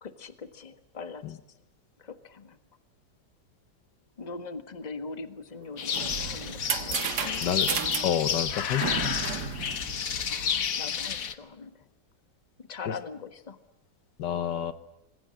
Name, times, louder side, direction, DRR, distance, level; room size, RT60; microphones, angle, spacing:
voice 1, 0.0-1.4 2.0-2.6 4.2-7.5 10.3-11.8 12.6-13.6, left 4 dB, 25° left, 9 dB, 1.4 m, -41 dB
sound 1, 5.6-10.6, right 7 dB, 65° right, 1.9 m, -34 dB
sound 2, 5.8-11.3, left 7 dB, 55° left, 1.5 m, -31 dB
voice 2, 8.0-9.2 12.9-13.0 14.2-14.7, left 9 dB, 85° left, 12 dB, 1.8 m, -29 dB
26.5 x 21.0 x 7.7 m, 0.89 s
omnidirectional pair, 1.9 m